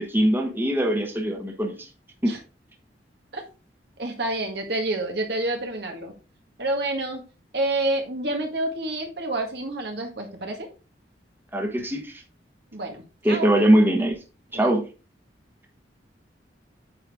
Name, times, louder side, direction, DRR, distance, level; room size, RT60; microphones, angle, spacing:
voice 1, 0.0-1.9 2.2-2.3 11.5-12.2 13.2-14.1 14.5-14.9, right 1 dB, 10° right, 1 dB, 1.3 m, -22 dB
voice 2, 4.0-6.1 6.6-7.2 7.5-10.7 12.7-13.5 14.5-14.7, right 2 dB, 65° right, 3 dB, 1.8 m, -28 dB
8.8 x 4.5 x 3.6 m, 0.32 s
head